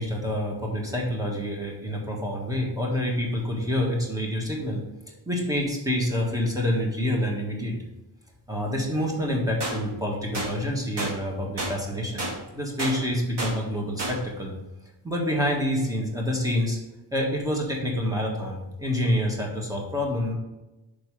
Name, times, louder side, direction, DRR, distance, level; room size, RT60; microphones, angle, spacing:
voice 1, 0.0-4.8 5.2-7.9 8.5-12.2 12.5-14.5 15.0-16.8 17.1-20.3, left 1 dB, 10° right, -1 dB, 1.6 m, -27 dB
sound 1, 9.6-9.8 10.3-10.5 11.0-11.1 11.6-11.7 12.2-12.3 12.8-12.9 13.4-13.5 14.0-14.1, right 2 dB, 65° right, 2.4 m, -29 dB
6.6 x 5.2 x 4.8 m, 1.0 s
wide cardioid pair, 160°, 44 cm